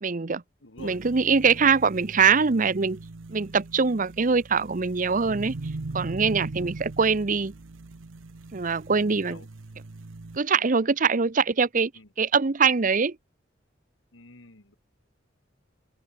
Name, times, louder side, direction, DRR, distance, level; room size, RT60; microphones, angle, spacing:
voice 1, 0.0-0.4 0.8-3.0 3.3-5.6 5.9-7.5 8.5-9.4 10.3-11.9 12.2-13.2, right 5 dB, 45° right, 0.7 m, -23 dB
voice 2, 0.6-1.0 1.5-1.7 9.2-9.5 11.9-12.1 14.1-14.8, left 2 dB, 80° left, 2.6 m, -47 dB
sound 1, 0.8-10.4, right 2 dB, 90° right, 0.9 m, -40 dB
open air
head